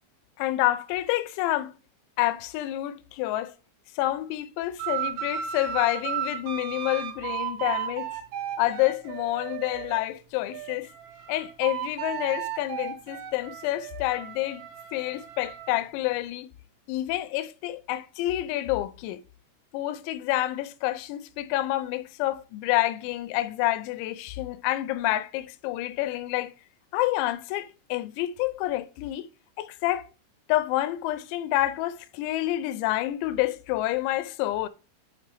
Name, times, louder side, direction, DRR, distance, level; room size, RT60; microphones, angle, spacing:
voice 1, 0.4-1.7 2.2-3.5 4.0-8.1 8.6-10.9 11.3-14.6 14.9-16.5 16.9-19.2 19.7-26.5 26.9-29.3 29.6-30.1 30.5-34.7, left 15 dB, 80° left, 2.8 m, -28 dB
sound 1, 4.8-10.0 10.5-15.8, right 10 dB, 90° right, 2.1 m, -35 dB
6.3 x 5.6 x 3.3 m
omnidirectional pair, 5.7 m